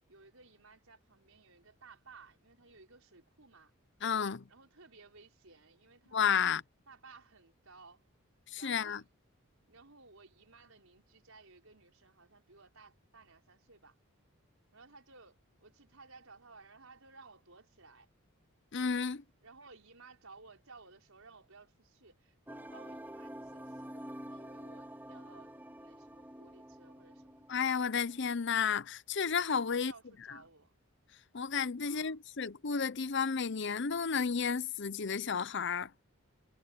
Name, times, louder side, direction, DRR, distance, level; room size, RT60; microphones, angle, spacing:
voice 1, 0.1-3.7 4.5-6.5 6.9-8.0 8.6-9.0 9.7-14.0 14.7-18.1 19.4-25.5 25.8-27.5 29.5-30.7 31.8-32.2, right 4 dB, 75° right, 5.1 m, -58 dB
voice 2, 4.0-4.5 6.1-6.6 8.5-9.0 18.7-19.2 27.5-29.9 30.3-30.4 31.3-35.9, left 6 dB, 55° left, 0.7 m, -32 dB
sound 1, 22.5-28.3, equal, 10° right, 3.7 m, -48 dB
head